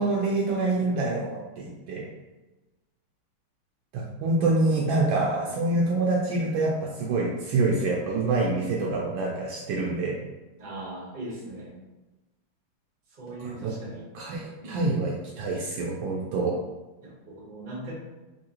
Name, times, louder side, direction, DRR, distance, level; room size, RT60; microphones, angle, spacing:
voice 1, 0.0-2.0 3.9-10.2 13.4-13.7 14.1-16.5, right 2 dB, 75° right, -3 dB, 1.2 m, -26 dB
voice 2, 0.7-1.0 4.4-5.0 5.5-5.9 10.6-11.8 13.1-14.1 14.6-15.0 17.0-17.9, right 2 dB, 45° right, -5 dB, 0.5 m, -40 dB
3.6 x 2.7 x 2.8 m, 1.1 s
omnidirectional pair, 2.3 m